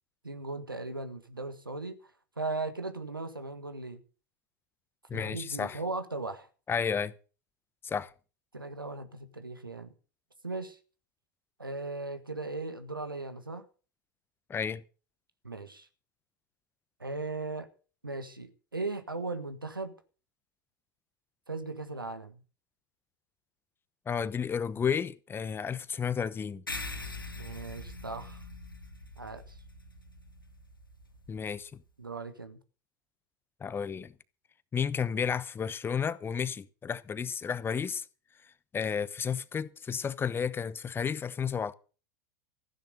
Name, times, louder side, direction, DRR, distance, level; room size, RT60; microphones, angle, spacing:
voice 1, 0.2-2.1 2.4-4.0 5.1-6.5 8.5-9.9 10.4-10.8 11.6-13.7 15.4-15.9 17.0-17.7 18.0-19.9 21.5-22.4 27.4-28.4 29.2-29.6 32.0-32.6, right 3 dB, 85° right, 1.6 m, -38 dB
voice 2, 5.1-5.8 6.7-7.1 7.8-8.1 14.5-14.8 24.1-26.6 31.3-31.8 33.6-34.1 34.7-38.0 38.7-41.7, left 7 dB, 20° left, 1.0 m, -32 dB
sound 1, 26.7-31.5, left 2 dB, 85° left, 2.0 m, -43 dB
15.0 x 10.5 x 6.6 m
figure-of-eight pair, 80°, 11 cm